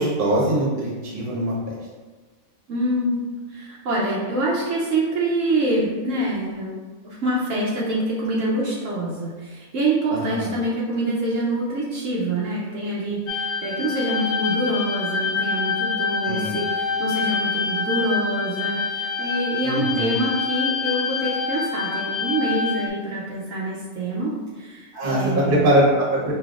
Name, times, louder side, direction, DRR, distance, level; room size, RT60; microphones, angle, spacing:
voice 1, 0.0-1.8 10.1-10.5 16.2-16.5 19.6-20.2 24.9-26.3, right 1 dB, 45° right, -4 dB, 1.1 m, -22 dB
voice 2, 2.7-3.2 3.5-6.7 7.0-25.7, right 1 dB, 70° right, -5 dB, 1.0 m, -25 dB
sound 1, 13.3-22.9, left 5 dB, 85° left, 1.0 m, -26 dB
5.1 x 2.9 x 2.4 m, 1.3 s
omnidirectional pair, 1.4 m